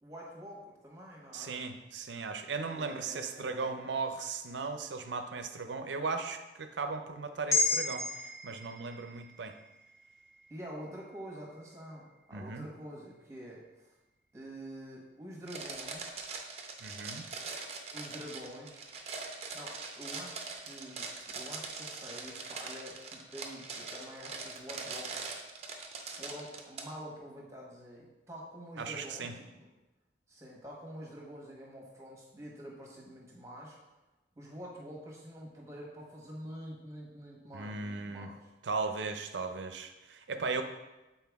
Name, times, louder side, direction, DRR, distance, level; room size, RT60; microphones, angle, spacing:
voice 1, 0.0-1.5 2.7-3.9 10.5-13.9 14.3-16.2 17.9-18.9 19.5-25.4 26.0-29.7 30.3-33.8 34.4-38.5, equal, 15° right, -3 dB, 1.3 m, -47 dB
voice 2, 1.3-8.1 8.4-9.5 12.3-12.7 16.8-17.3 28.8-29.3 37.5-38.3 38.6-40.6, right 4 dB, 85° right, 7 dB, 0.6 m, -37 dB
sound 1, 7.5-12.0 12.4-12.5, left 3 dB, 20° left, 0.6 m, -35 dB
sound 2, 15.5-26.8, right 4 dB, 35° right, 0.6 m, -42 dB
7.8 x 4.4 x 3.5 m, 1.1 s
head